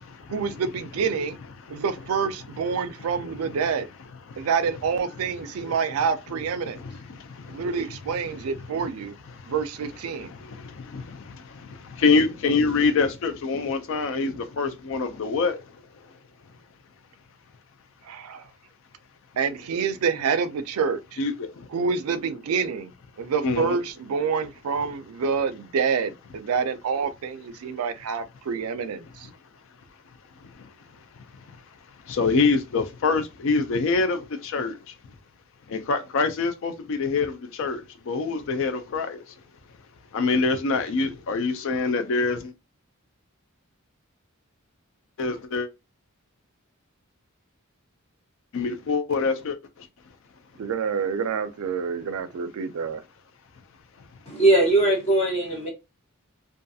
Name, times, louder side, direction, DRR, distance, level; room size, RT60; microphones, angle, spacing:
voice 1, 0.3-1.4 1.7-3.9 4.4-6.8 7.5-9.1 9.5-10.3 18.0-18.5 19.4-21.2 21.7-22.9 23.2-29.3 50.6-53.0, right 6 dB, 85° right, 0.4 m, -27 dB
voice 2, 6.7-7.7 9.4-9.5 10.2-15.6 21.2-21.7 23.4-23.8 30.5-30.7 31.2-31.3 32.0-34.9 35.7-39.3 40.1-42.5 45.2-45.7 48.5-49.9, left 4 dB, 65° left, 0.4 m, -26 dB
voice 3, 54.3-55.7, right 2 dB, 30° left, 1.1 m, -20 dB
2.4 x 2.3 x 2.6 m
head